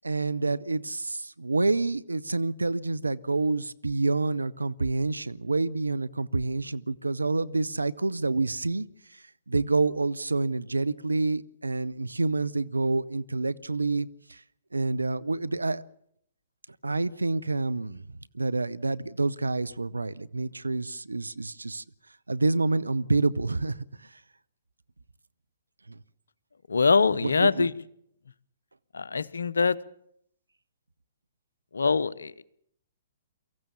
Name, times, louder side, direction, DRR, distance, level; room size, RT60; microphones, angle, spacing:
voice 1, 0.0-8.9 9.5-14.4 14.7-15.8 16.8-18.0 18.3-21.8 22.3-23.9 25.9-26.0 27.2-27.7, right 3 dB, 85° right, 15 dB, 0.7 m, -28 dB
voice 2, 26.7-27.7 28.9-29.8 31.7-32.4, left 4 dB, 75° left, 17 dB, 0.8 m, -23 dB
23.5 x 15.5 x 7.2 m, 0.71 s
figure-of-eight pair, 120°, 0 cm